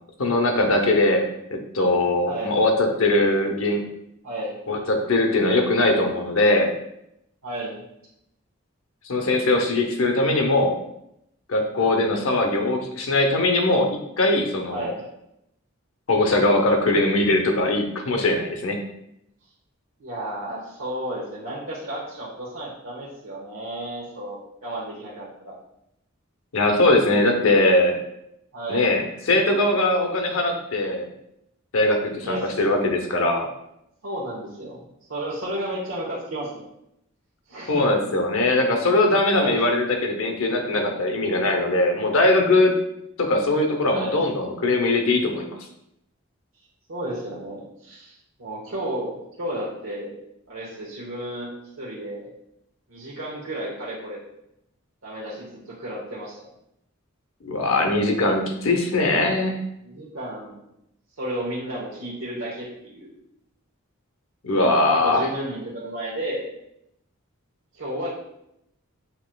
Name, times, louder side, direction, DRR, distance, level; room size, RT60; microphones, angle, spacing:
voice 1, 0.2-1.2 1.5-3.8 4.7-6.7 9.0-10.8 11.5-14.9 16.1-18.8 26.5-28.0 28.7-31.1 31.7-33.5 37.7-42.7 43.2-45.6 57.4-59.6 64.4-65.3, left 2 dB, 75° left, 4 dB, 0.7 m, -21 dB
voice 2, 2.3-2.7 4.2-4.6 7.4-7.8 14.7-15.1 20.0-25.5 28.5-28.9 32.2-32.5 34.0-34.8 35.1-36.6 37.5-37.8 39.3-39.6 41.4-41.5 43.9-44.2 46.9-50.2 50.5-52.3 52.9-54.2 55.0-56.4 59.8-60.6 61.2-63.1 64.5-66.5 67.7-68.1, right 1 dB, 85° right, -7 dB, 1.0 m, -33 dB
7.8 x 3.0 x 2.2 m, 0.81 s
head